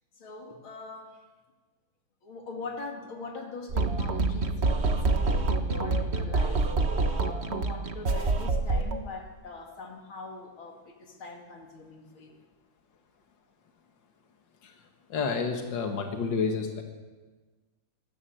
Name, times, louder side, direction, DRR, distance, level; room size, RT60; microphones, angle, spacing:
voice 1, 0.2-1.2 2.2-6.7 7.1-12.4, left 3 dB, 90° left, 2 dB, 3.4 m, -42 dB
sound 1, 3.7-9.0, right 3 dB, 35° right, 1.4 m, -26 dB
voice 2, 15.1-16.8, left 5 dB, 65° left, 3 dB, 2.5 m, -29 dB
25.0 x 17.0 x 8.0 m, 1.3 s
omnidirectional pair, 2.2 m